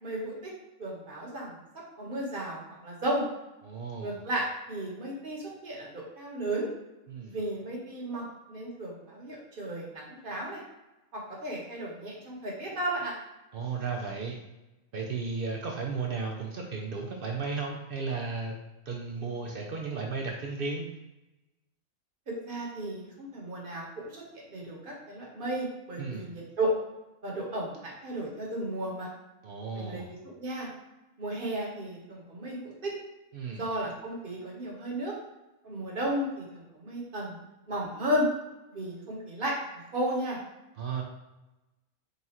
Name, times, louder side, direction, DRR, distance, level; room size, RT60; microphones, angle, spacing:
voice 1, 0.0-0.5 0.8-1.6 2.0-3.3 4.0-6.7 7.3-10.6 11.1-13.1 18.9-19.4 22.3-26.7 27.2-29.1 29.7-30.7 31.2-32.9 33.6-35.1 35.6-37.4 37.7-38.3 38.7-39.5 39.9-40.4, right 1 dB, 40° right, -3 dB, 1.1 m, -34 dB
voice 2, 3.6-4.2 7.1-7.4 13.5-14.4 14.9-18.6 18.9-20.9 26.0-26.3 29.4-30.1 33.3-33.6 40.8-41.0, right 4 dB, 65° right, 0 dB, 0.5 m, -34 dB
4.0 x 2.4 x 4.2 m, 0.98 s
omnidirectional pair, 1.5 m